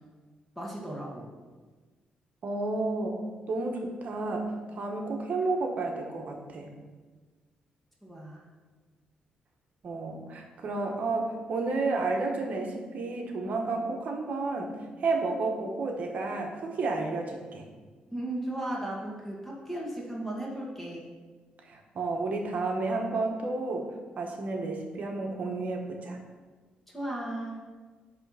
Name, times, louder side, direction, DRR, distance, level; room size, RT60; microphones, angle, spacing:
voice 1, 0.6-1.3 8.0-8.4 18.1-21.0 26.9-27.6, right 1 dB, 5° left, -4 dB, 1.8 m, -36 dB
voice 2, 2.4-3.2 3.5-6.7 9.8-14.7 15.0-17.7 21.7-23.9 24.2-26.2, right 3 dB, 55° right, 2 dB, 1.2 m, -31 dB
10.0 x 3.5 x 5.7 m, 1.4 s
cardioid pair, 110°, 3 cm